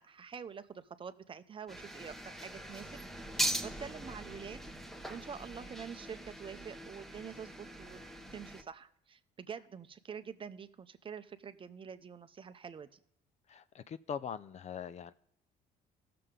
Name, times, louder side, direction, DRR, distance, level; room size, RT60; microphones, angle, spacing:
voice 1, 0.0-3.0 3.3-4.6 5.1-8.0 8.3-13.0, right 7 dB, 30° right, 11 dB, 0.6 m, -46 dB
sound 1, 1.7-8.6, right 1 dB, ahead, 0.9 m, -41 dB
voice 2, 13.5-15.1, left 7 dB, 40° left, 14 dB, 0.5 m, -42 dB
16.0 x 6.8 x 3.7 m, 0.75 s
cardioid pair, 110°, 17 cm